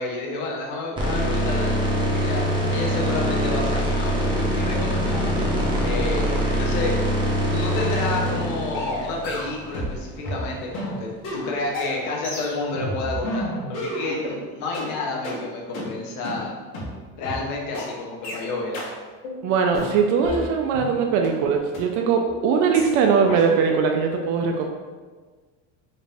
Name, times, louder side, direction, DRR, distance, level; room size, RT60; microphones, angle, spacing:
voice 1, 0.0-5.4 5.8-7.1 7.5-16.5 17.1-18.8, left 3 dB, 50° left, -1 dB, 0.9 m, -30 dB
sound 1, 1.0-10.1, equal, 15° right, 0.6 m, -23 dB
sound 2, 7.7-7.9 8.3-8.5 8.7-10.0 10.2-14.4 14.7-14.9 15.2-15.4 15.7-15.9 16.2-16.4 16.7-16.9 17.2-17.4 17.7-17.9 18.2-18.4 18.7-18.9 19.2-19.4 19.7-20.9 21.2-21.3 21.7-21.8 22.2-22.4 22.7-22.9 23.2-23.4, left 1 dB, 85° left, 1.4 m, -31 dB
voice 2, 19.4-24.7, right 5 dB, 55° right, 3 dB, 0.4 m, -21 dB
4.0 x 2.6 x 3.4 m, 1.4 s
cardioid pair, 155°, 36 cm